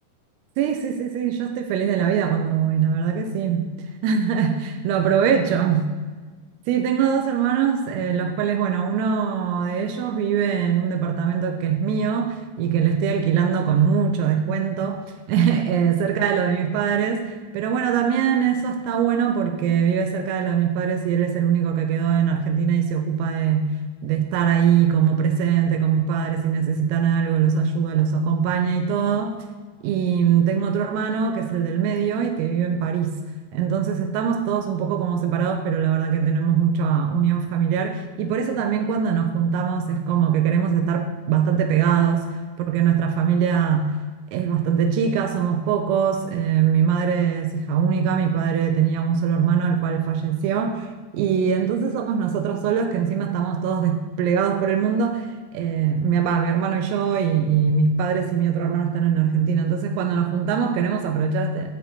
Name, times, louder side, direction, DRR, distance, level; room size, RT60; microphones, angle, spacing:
voice 1, 0.6-3.7 4.0-5.9 6.7-23.7 24.0-29.4 29.8-33.2 33.5-43.9 44.3-61.7, right 7 dB, 85° right, 5 dB, 3.5 m, -22 dB
13.0 x 5.9 x 8.2 m, 1.4 s
omnidirectional pair, 6.0 m